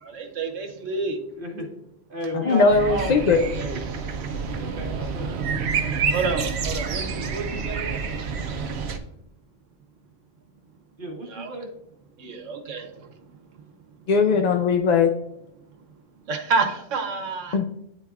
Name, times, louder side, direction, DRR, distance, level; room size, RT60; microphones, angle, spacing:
voice 1, 0.0-1.2 6.1-8.2 11.3-11.6 12.2-13.3 13.5-13.6 13.9-14.0 16.3-17.6, right 4 dB, 85° right, 5 dB, 1.3 m, -29 dB
voice 2, 1.4-1.7 2.1-3.1 3.6-3.8 4.3-5.3 11.0-11.7 14.3-14.6, right 1 dB, 45° right, 1 dB, 1.4 m, -33 dB
voice 3, 2.3-3.4 14.1-15.1 17.5-17.6, left 4 dB, 60° left, 4 dB, 0.4 m, -19 dB
sound 1, 2.7-9.0, right 5 dB, 65° right, 0.9 m, -28 dB
9.8 x 4.0 x 2.4 m, 0.79 s
omnidirectional pair, 1.2 m